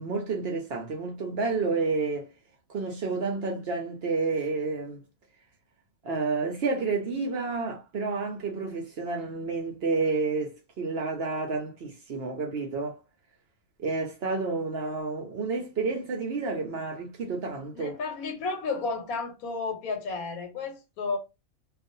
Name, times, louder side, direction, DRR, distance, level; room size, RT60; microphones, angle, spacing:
voice 1, 0.0-2.3 2.7-5.0 6.0-13.0 13.8-18.0, right 4 dB, 60° right, 0.7 m, -30 dB
voice 2, 17.7-21.2, left 4 dB, 90° left, 1.3 m, -32 dB
2.4 x 2.4 x 2.6 m
omnidirectional pair, 1.5 m